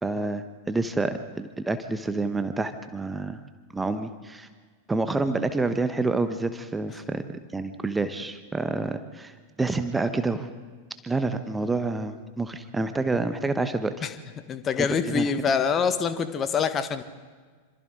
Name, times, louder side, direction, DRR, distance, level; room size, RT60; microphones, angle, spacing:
voice 1, 0.0-3.4 3.7-4.5 4.9-9.3 9.6-10.5 11.0-13.9 14.8-15.3, right 3 dB, 10° right, 10 dB, 1.2 m, -28 dB
voice 2, 14.5-17.0, left 6 dB, 25° left, 11 dB, 1.5 m, -25 dB
26.5 x 26.5 x 3.9 m, 1.5 s
figure-of-eight pair, 90°, 0 cm